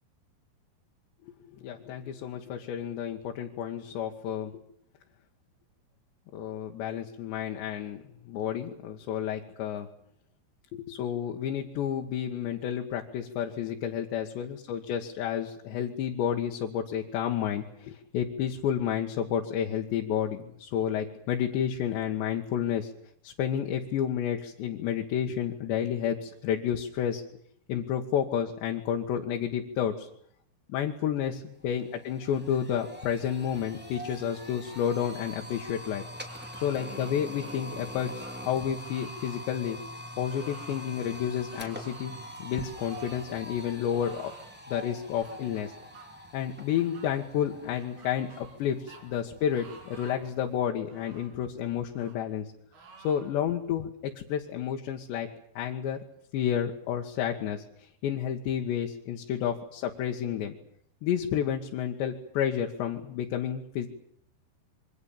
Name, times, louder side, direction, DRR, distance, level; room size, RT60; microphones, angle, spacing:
voice 1, 1.6-4.5 6.3-9.9 10.7-22.9 23.2-27.2 27.7-30.1 30.7-36.0 36.6-39.8 40.2-42.1 42.4-44.3 44.7-45.7 46.3-52.5 53.0-55.3 55.6-56.0 56.3-60.6 61.0-63.9, left 9 dB, 90° left, 1 dB, 3.8 m, -31 dB
sound 1, 31.2-31.3 31.6-50.6, equal, 5° right, 2.1 m, -44 dB
sound 2, 36.3-37.1 37.4-38.4 38.8-39.4 40.3-40.9 41.5-42.1 42.8-43.3 43.9-44.5 45.2-46.1 46.7-47.1 47.7-48.6 48.9-49.0 49.5-50.3 50.8-51.4 51.9-52.2 52.7-53.3, right 4 dB, 65° right, 7.1 m, -51 dB
26.5 x 24.0 x 7.3 m, 0.66 s
omnidirectional pair, 4.9 m